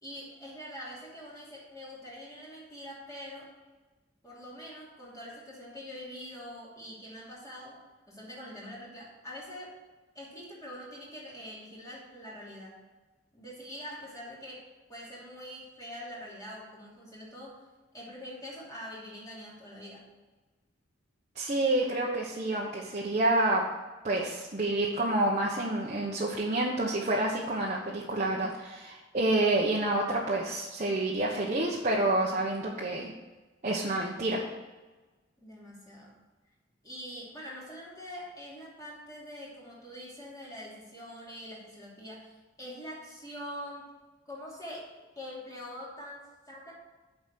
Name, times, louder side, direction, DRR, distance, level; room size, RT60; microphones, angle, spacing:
voice 1, 0.0-3.5 4.2-7.8 8.1-9.7 10.1-12.8 13.3-17.6 17.9-20.1 35.4-36.1 36.8-42.3 42.6-43.9 44.2-44.8 45.2-46.7, equal, 20° left, -6 dB, 2.8 m, -44 dB
voice 2, 21.3-23.6 24.0-33.1 33.6-34.4, right 2 dB, 35° right, -3 dB, 1.1 m, -28 dB
8.0 x 5.1 x 7.6 m, 1.2 s
head